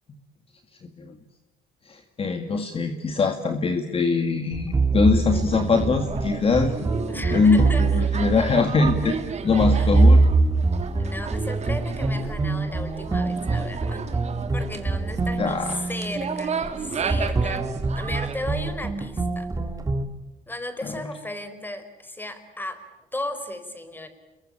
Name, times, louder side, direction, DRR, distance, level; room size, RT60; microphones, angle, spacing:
voice 1, 0.8-1.2 1.9-6.7 7.3-9.2 9.4-10.2 15.4-15.9 20.8-21.0, left 4 dB, 35° left, 6 dB, 2.1 m, -22 dB
sound 1, 4.5-20.0, right 3 dB, 20° right, 2.4 m, -24 dB
sound 2, 5.3-18.3, right 6 dB, 40° right, 3.0 m, -34 dB
voice 2, 7.1-8.2 9.7-9.9 11.0-14.0 14.5-17.7 17.9-19.5 20.5-22.8 23.1-24.1, left 1 dB, 10° left, 10 dB, 4.5 m, -35 dB
29.0 x 22.5 x 8.7 m, 1.0 s
cardioid pair, 110°, 17 cm